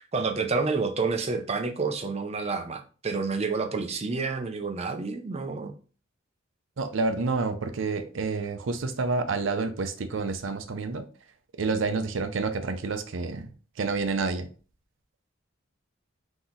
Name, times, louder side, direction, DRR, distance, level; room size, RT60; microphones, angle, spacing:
voice 1, 0.0-5.7, right 4 dB, 35° right, 0.6 m, -29 dB
voice 2, 6.8-11.0 11.6-13.5 13.8-14.5, right 3 dB, 75° right, 0.6 m, -29 dB
3.9 x 2.9 x 3.9 m
head